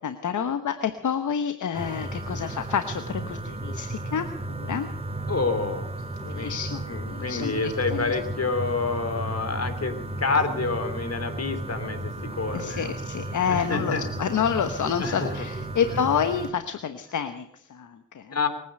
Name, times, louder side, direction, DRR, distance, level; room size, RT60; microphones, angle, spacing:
voice 1, 0.0-4.3 4.6-4.9 6.2-8.1 12.5-18.4, left 7 dB, 75° left, 9 dB, 1.1 m, -28 dB
sound 1, 1.7-16.5, right 2 dB, 20° right, 2.9 m, -34 dB
voice 2, 5.3-5.9 6.3-6.6 6.8-12.9 13.5-14.1 15.0-15.5 15.8-15.9 18.3-18.5, left 4 dB, 55° left, 9 dB, 3.4 m, -28 dB
23.0 x 9.5 x 6.6 m, 0.76 s
cardioid pair, 50°, 30 cm